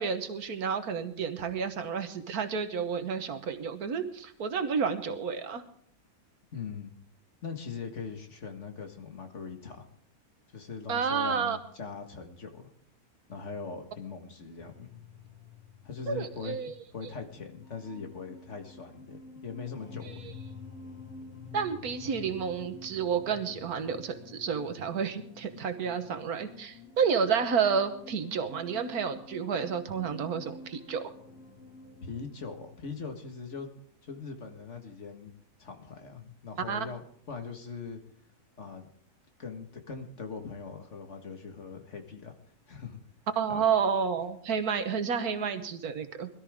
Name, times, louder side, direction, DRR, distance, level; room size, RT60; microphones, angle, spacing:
voice 1, 0.0-5.6 10.9-11.6 16.1-16.7 21.5-31.1 36.7-36.8 43.4-46.3, right 6 dB, 85° right, 9 dB, 1.7 m, -30 dB
voice 2, 6.5-6.9 7.4-9.9 10.5-12.7 13.3-14.9 15.8-16.6 16.9-20.4 32.0-33.7 34.0-35.3 35.6-38.0 38.6-38.9 39.4-42.3 42.7-43.0 43.5-43.7, left 5 dB, 50° left, 5 dB, 2.0 m, -41 dB
sound 1, 14.6-33.4, left 3 dB, 85° left, 2.5 m, -49 dB
21.5 x 13.0 x 3.6 m, 0.64 s
omnidirectional pair, 1.6 m